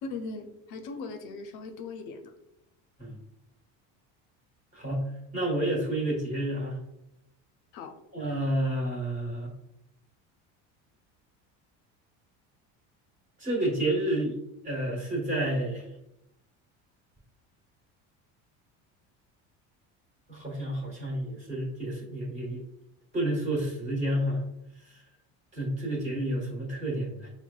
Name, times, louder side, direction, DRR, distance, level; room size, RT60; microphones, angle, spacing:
voice 1, 0.0-2.3 7.7-7.9, left 3 dB, 65° left, 6 dB, 0.5 m, -39 dB
voice 2, 4.7-5.0 5.3-6.8 8.1-9.5 13.4-14.3 14.6-15.8 20.3-22.6 23.1-24.4 25.5-27.3, right 1 dB, 20° right, -3 dB, 1.3 m, -30 dB
6.0 x 2.1 x 2.3 m, 0.83 s
cardioid pair, 140°, 33 cm